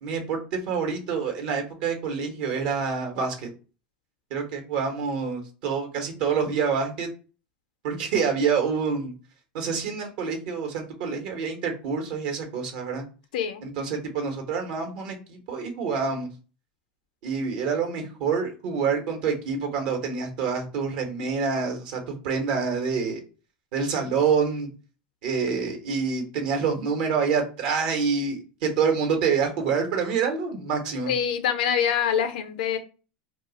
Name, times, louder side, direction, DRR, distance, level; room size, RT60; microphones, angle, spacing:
voice 1, 0.0-3.5 4.3-7.1 7.8-9.1 9.5-13.0 13.6-16.3 17.2-23.2 23.7-24.7 25.2-31.1, right 5 dB, 65° right, 1.1 m, -27 dB
voice 2, 13.3-13.7 31.1-32.8, left 8 dB, 80° left, 0.5 m, -25 dB
2.4 x 2.4 x 3.9 m
supercardioid pair, 110°, 4 cm